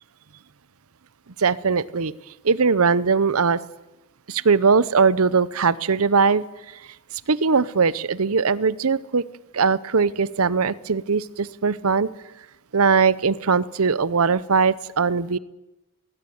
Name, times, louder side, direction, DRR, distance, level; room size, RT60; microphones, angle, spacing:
voice 1, 1.4-2.1 2.4-3.6 4.3-6.4 7.3-9.2 9.5-12.1 12.7-15.4, right 5 dB, 75° right, 19 dB, 0.8 m, -20 dB
20.0 x 17.0 x 9.4 m, 0.99 s
head